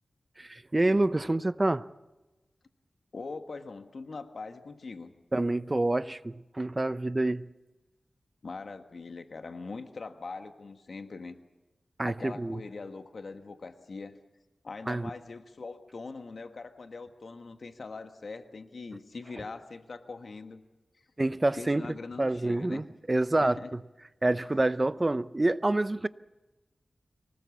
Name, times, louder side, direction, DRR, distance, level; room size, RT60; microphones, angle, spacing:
voice 1, 0.4-1.9 5.3-7.5 12.0-12.6 14.9-15.1 21.2-21.9 22.2-23.6 24.2-26.1, right 2 dB, 25° right, 0.6 m, -27 dB
voice 2, 3.1-5.1 8.4-11.3 12.0-14.2 14.6-20.6 21.5-22.8 23.4-23.8, left 4 dB, 65° left, 1.4 m, -42 dB
24.0 x 19.0 x 7.2 m
wide cardioid pair, 70°, 0 cm